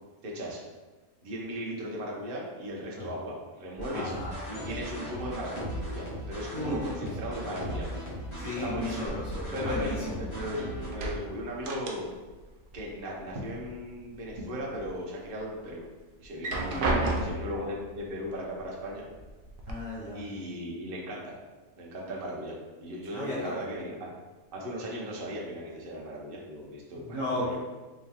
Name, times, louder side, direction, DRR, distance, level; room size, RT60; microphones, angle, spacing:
voice 1, 0.2-0.6 1.2-4.1 4.5-5.5 5.8-7.9 8.4-9.1 9.5-10.6 10.9-12.1 12.7-15.8 16.2-16.8 17.2-19.1 20.1-21.3 21.8-22.5 22.8-24.1 24.5-27.6, equal, 45° right, -3 dB, 0.9 m, -37 dB
sound 1, 3.8-10.9, equal, 45° left, 1.4 m, -37 dB
voice 2, 3.9-4.3 6.5-6.8 8.4-10.2 16.5-17.3 19.7-20.2 23.1-23.5 26.9-27.6, left 1 dB, 20° left, -8 dB, 1.2 m, -34 dB
sound 2, 9.2-10.5 10.8-12.4 12.7-13.7 14.1-14.9 15.4-15.5 16.2-17.6 18.6-18.7 19.1-19.7, right 2 dB, 75° right, 0.4 m, -33 dB
3.9 x 3.5 x 2.9 m, 1.2 s
omnidirectional pair, 1.6 m